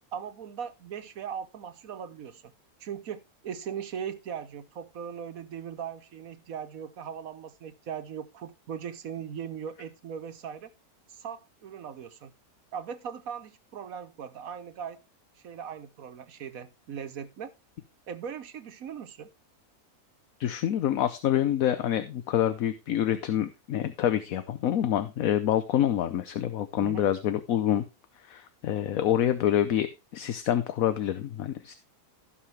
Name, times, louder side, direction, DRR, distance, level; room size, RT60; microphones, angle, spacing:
voice 1, 0.1-2.5 2.8-10.7 11.1-12.3 12.7-15.0 15.4-17.5 18.1-19.3 26.8-27.1, right 8 dB, 70° right, 10 dB, 1.4 m, -39 dB
voice 2, 20.4-27.8 28.3-31.7, left 11 dB, 70° left, 11 dB, 1.2 m, -27 dB
16.5 x 5.7 x 3.3 m, 0.25 s
omnidirectional pair, 1.6 m